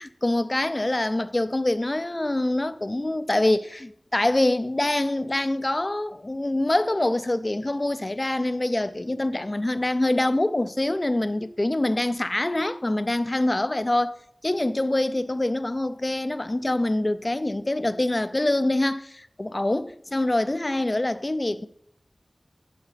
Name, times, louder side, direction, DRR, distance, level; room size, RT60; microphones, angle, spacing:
voice 1, 0.0-14.2 14.4-21.7, left 1 dB, 35° left, 0.5 m, -25 dB
11.5 x 5.1 x 5.0 m
wide cardioid pair, 60°, 0 cm